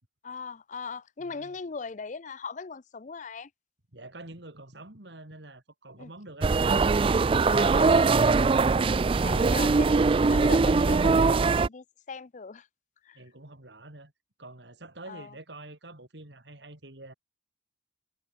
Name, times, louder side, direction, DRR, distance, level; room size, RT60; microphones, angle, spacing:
voice 1, 0.2-3.5 6.0-6.1 7.5-12.7 13.0-13.2 15.1-15.3, left 5 dB, 40° left, 0.5 m, -39 dB
voice 2, 1.2-1.5 3.9-6.5 13.1-14.1 14.4-17.1, right 2 dB, 65° right, 3.0 m, -47 dB
sound 1, 6.4-11.7, right 4 dB, 30° right, 0.3 m, -22 dB
head